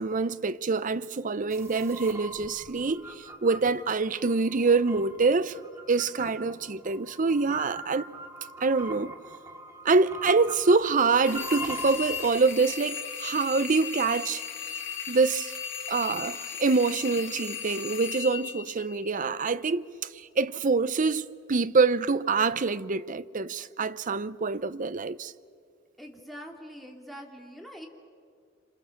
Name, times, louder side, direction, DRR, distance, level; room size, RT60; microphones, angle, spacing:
voice 1, 0.0-5.6 5.9-8.1 8.6-9.1 9.8-14.4 15.1-15.5 15.9-19.9 20.1-25.3, right 4 dB, 45° right, 0.6 m, -25 dB
sound 1, 1.5-12.3, right 2 dB, 15° right, 2.6 m, -42 dB
sound 2, 11.2-19.4, left 7 dB, 80° left, 2.9 m, -36 dB
voice 2, 26.0-27.9, equal, ahead, 2.9 m, -44 dB
27.5 x 27.0 x 7.2 m
head